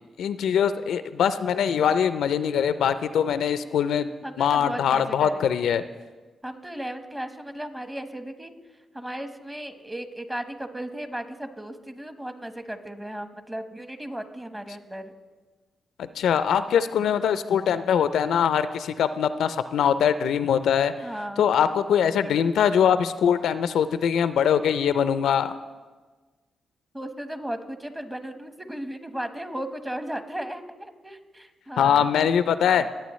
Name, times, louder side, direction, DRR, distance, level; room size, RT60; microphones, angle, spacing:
voice 1, 0.2-4.1 4.4-5.8 16.0-20.9 21.4-25.5 31.8-32.9, left 8 dB, 80° left, 12 dB, 0.4 m, -22 dB
voice 2, 4.2-5.5 6.4-8.5 8.9-15.1 21.0-21.4 26.9-32.1, right 1 dB, 15° right, 8 dB, 1.2 m, -35 dB
19.0 x 8.0 x 3.1 m, 1.3 s
supercardioid pair, 55°, 0 cm